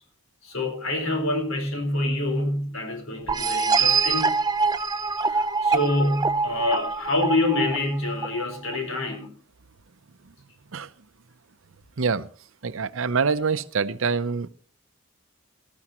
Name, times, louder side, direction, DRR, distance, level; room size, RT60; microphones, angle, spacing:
voice 1, 0.4-4.4 5.2-9.4, left 1 dB, 75° left, 4 dB, 4.4 m, -26 dB
sound 1, 3.3-8.8, right 4 dB, 15° right, 0.7 m, -24 dB
voice 2, 12.0-12.3 12.6-14.5, right 5 dB, 65° right, 14 dB, 0.6 m, -25 dB
18.5 x 13.5 x 3.0 m, 0.41 s
head